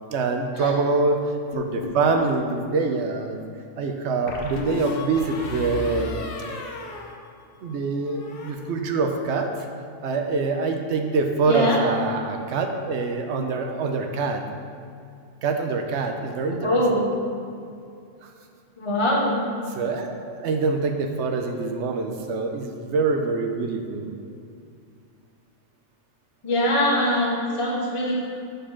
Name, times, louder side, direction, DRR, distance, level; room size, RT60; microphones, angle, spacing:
voice 1, 0.1-1.2 1.5-3.4 3.8-6.1 7.6-9.5 10.0-14.4 15.4-17.0 19.7-24.1, right 4 dB, 70° right, 4 dB, 0.9 m, -25 dB
sound 1, 1.5-2.4 4.3-7.8 8.0-8.5, left 4 dB, 55° left, 0.8 m, -34 dB
voice 2, 11.5-11.8 16.6-17.1 18.8-19.4 26.4-28.3, equal, 30° left, -3 dB, 0.8 m, -22 dB
5.3 x 4.3 x 5.6 m, 2.4 s
omnidirectional pair, 1.3 m